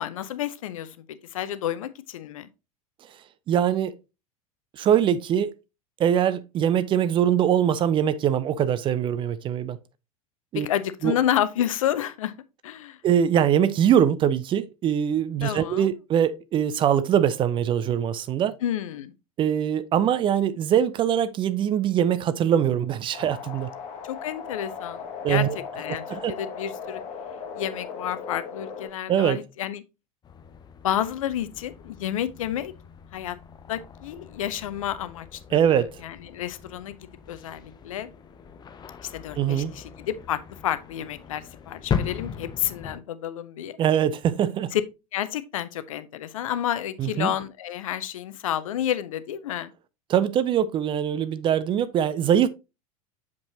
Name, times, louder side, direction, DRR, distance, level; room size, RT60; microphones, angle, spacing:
voice 1, 0.0-2.5 10.5-12.3 12.6-13.0 15.4-15.9 18.6-19.1 24.0-25.5 25.8-27.0 27.5-29.8 30.8-32.7 33.1-33.4 33.7-37.0 37.3-38.1 39.0-43.8 44.7-44.8 45.1-49.7, left 11 dB, 60° left, 0.6 m, -30 dB
voice 2, 3.5-3.9 4.8-5.5 6.0-9.8 10.5-10.7 11.0-11.1 13.0-18.6 19.4-23.7 25.2-25.6 25.9-26.3 29.1-29.4 35.5-35.9 39.4-39.7 43.8-44.7 47.0-47.3 50.1-52.5, right 9 dB, 25° right, 0.4 m, -22 dB
sound 1, 23.1-28.9, left 6 dB, 40° left, 1.5 m, -37 dB
sound 2, 30.2-43.0, left 7 dB, 20° left, 0.6 m, -38 dB
6.8 x 5.2 x 2.8 m
figure-of-eight pair, 80°, 19 cm